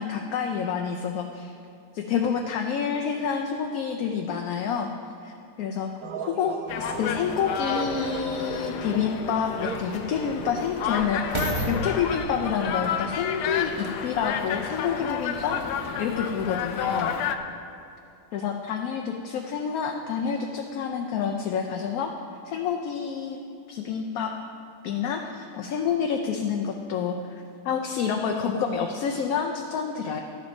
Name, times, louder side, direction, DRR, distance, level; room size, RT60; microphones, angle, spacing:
voice 1, 0.0-1.5 1.9-4.9 5.2-5.9 6.2-15.6 16.0-17.1 18.3-22.1 22.4-23.4 23.7-24.3 24.8-27.3 27.6-30.2, left 7 dB, 70° left, 3 dB, 1.0 m, -28 dB
sound 1, 6.0-16.0, right 6 dB, 75° right, 1.2 m, -40 dB
sound 2, 6.7-17.4, left 8 dB, 90° left, 1.2 m, -31 dB
sound 3, 8.3-8.4 9.1-14.4 15.1-15.2, right 1 dB, 25° right, 0.8 m, -35 dB
11.5 x 7.4 x 5.2 m, 2.6 s
omnidirectional pair, 1.7 m